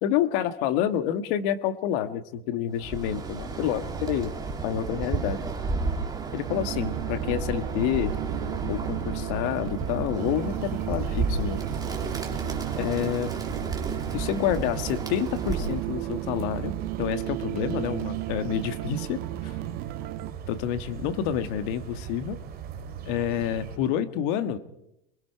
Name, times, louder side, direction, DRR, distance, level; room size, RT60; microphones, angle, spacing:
voice 1, 0.0-4.3 4.6-5.4 6.3-8.2 8.7-11.6 12.8-13.4 14.1-19.6 20.5-22.4 23.0-24.6, left 10 dB, 55° left, 11 dB, 1.8 m, -28 dB
Bird, 2.8-15.9, right 4 dB, 10° right, 3.0 m, -32 dB
sound 1, 6.5-20.3, right 15 dB, 50° right, 1.4 m, -34 dB
sound 2, 10.1-23.8, right 9 dB, 30° right, 2.5 m, -40 dB
28.0 x 21.5 x 4.7 m, 0.82 s
supercardioid pair, 140°, 30 cm